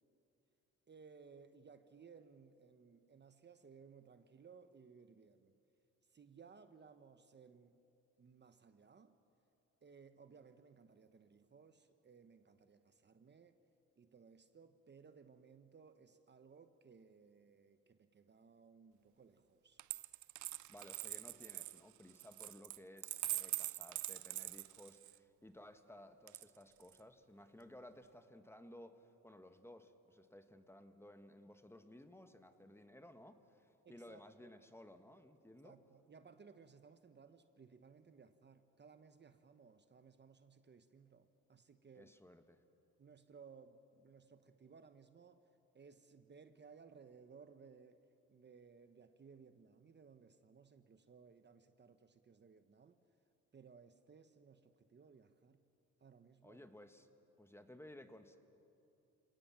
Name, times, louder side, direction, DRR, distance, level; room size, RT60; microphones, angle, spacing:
voice 1, 0.9-5.6 6.1-7.8 8.2-9.2 9.8-13.6 14.0-19.8 33.8-34.5 35.6-42.2 43.0-45.4 45.7-48.0 48.3-53.0 53.5-55.7 56.0-56.6, right 5 dB, 35° right, 1.1 m, -61 dB
Coin (dropping), 19.8-25.2 26.3-27.0, right 16 dB, 75° right, 0.6 m, -44 dB
voice 2, 20.7-35.8 42.0-42.6 56.4-57.1 57.4-58.4, left 1 dB, 10° left, 1.5 m, -58 dB
29.0 x 18.0 x 7.5 m
cardioid pair, 90°, 30 cm